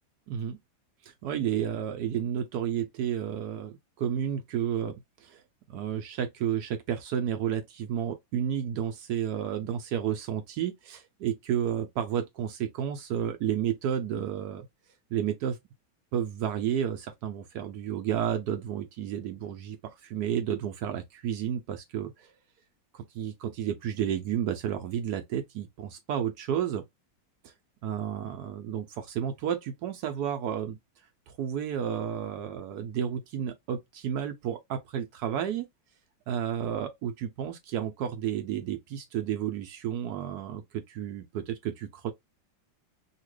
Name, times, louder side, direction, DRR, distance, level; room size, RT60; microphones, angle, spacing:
voice 1, 0.3-0.6 1.2-4.9 5.2-5.4 5.7-14.7 15.1-15.6 16.1-22.3 22.9-26.8 27.4-27.5 27.8-30.8 31.3-35.6 36.3-42.1, right 9 dB, 70° right, 1.0 m, -31 dB
2.8 x 2.8 x 3.0 m
omnidirectional pair, 1.9 m